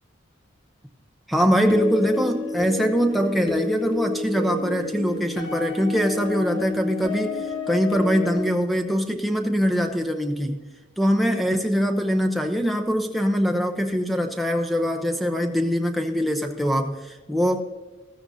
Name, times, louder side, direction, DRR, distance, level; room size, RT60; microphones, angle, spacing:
voice 1, 1.3-10.6 11.0-17.6, equal, ahead, 4 dB, 0.7 m, -23 dB
sound 1, 1.7-8.5, left 2 dB, 65° left, 1.7 m, -30 dB
15.0 x 13.5 x 2.7 m, 1.3 s
head